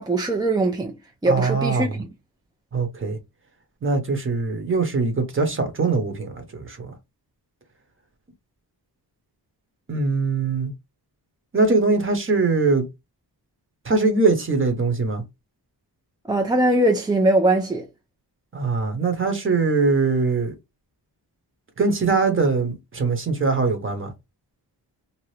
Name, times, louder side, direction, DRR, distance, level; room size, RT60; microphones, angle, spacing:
voice 1, 0.0-2.1 16.3-17.9, right 2 dB, 10° right, 0.3 m, -21 dB
voice 2, 1.3-2.0 2.7-3.2 3.8-6.9 9.9-10.7 11.5-12.8 13.8-15.2 18.5-20.5 21.8-24.1, right 3 dB, 30° right, 0.9 m, -22 dB
2.8 x 2.4 x 3.2 m
wide cardioid pair, 130°, 42 cm